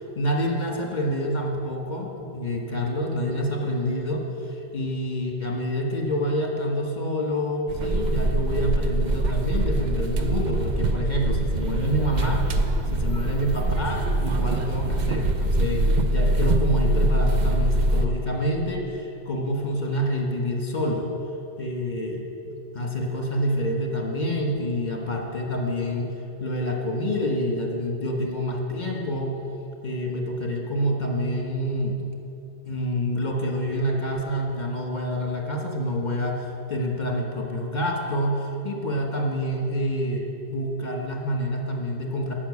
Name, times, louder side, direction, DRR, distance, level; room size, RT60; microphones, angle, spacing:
voice 1, 0.1-12.6 12.9-21.1 21.6-29.4 29.8-32.1 32.6-42.3, equal, 40° left, 1 dB, 1.5 m, -27 dB
sound 1, 7.7-18.1, right 1 dB, 45° right, 0.7 m, -23 dB
11.5 x 6.3 x 8.4 m, 2.7 s
omnidirectional pair, 1.1 m